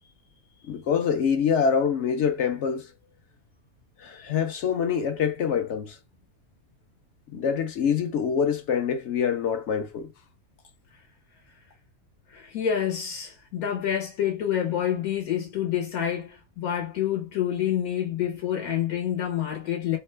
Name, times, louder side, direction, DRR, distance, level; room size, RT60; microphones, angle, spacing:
voice 1, 0.7-2.9 4.0-6.0 7.3-10.1, left 7 dB, 65° left, 0.8 m, -25 dB
voice 2, 12.3-20.0, left 10 dB, 85° left, 1.3 m, -28 dB
3.0 x 2.2 x 3.2 m
omnidirectional pair, 1.5 m